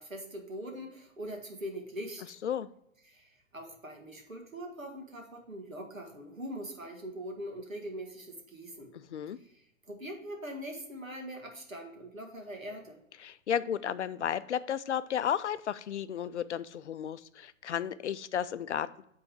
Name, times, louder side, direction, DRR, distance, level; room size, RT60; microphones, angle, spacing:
voice 1, 0.0-2.4 3.1-8.9 9.4-13.0, equal, 85° right, 2 dB, 1.9 m, -42 dB
voice 2, 8.9-9.4 13.2-19.0, left 9 dB, 60° left, 15 dB, 0.5 m, -33 dB
8.7 x 3.8 x 4.7 m, 0.78 s
figure-of-eight pair, 120°, 39 cm